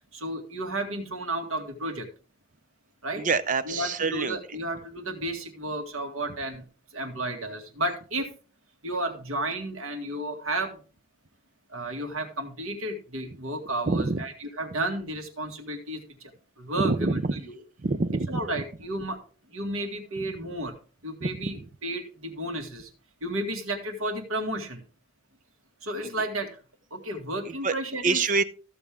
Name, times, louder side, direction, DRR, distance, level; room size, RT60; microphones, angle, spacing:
voice 1, 0.1-2.1 3.0-3.2 3.7-6.6 6.9-8.3 8.8-10.8 11.7-16.0 16.6-17.2 17.5-17.6 18.3-19.2 19.5-20.7 21.0-22.9 23.2-24.8 25.8-26.5 26.9-28.2, right 1 dB, 75° right, 2.1 m, -32 dB
voice 2, 3.2-4.4 13.9-14.2 16.8-17.4 17.8-18.4 20.2-20.3 21.2-21.5 26.0-26.2 27.5-27.7 28.0-28.4, right 3 dB, 40° right, 0.6 m, -26 dB
14.5 x 6.9 x 3.6 m
head